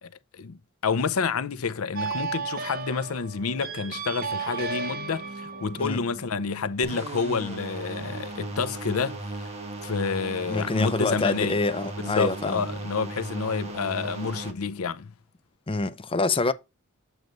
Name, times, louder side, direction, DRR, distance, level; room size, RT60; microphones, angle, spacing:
voice 1, 0.0-0.6 0.8-9.5 9.8-11.6 12.0-15.1, left 5 dB, 85° left, 0.6 m, -29 dB
sound 1, 2.0-7.0, right 5 dB, 45° right, 0.9 m, -34 dB
sound 2, 6.8-14.5, right 2 dB, 30° right, 1.5 m, -36 dB
voice 2, 10.5-12.6 15.7-16.5, left 3 dB, 25° left, 0.6 m, -26 dB
7.9 x 3.1 x 5.1 m
head